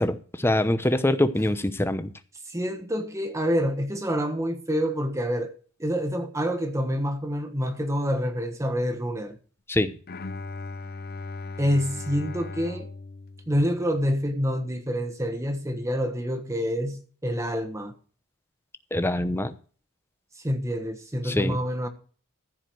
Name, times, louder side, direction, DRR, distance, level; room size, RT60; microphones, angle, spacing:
voice 1, 0.0-2.1 9.7-9.9 18.9-19.5 21.3-21.6, left 1 dB, 10° left, 0.8 m, -24 dB
voice 2, 2.5-5.5 5.8-9.4 11.6-12.9 13.5-17.9 20.4-21.9, equal, 15° right, 1.3 m, -27 dB
Bowed string instrument, 10.1-14.2, left 3 dB, 45° left, 0.7 m, -38 dB
14.5 x 5.1 x 7.7 m
head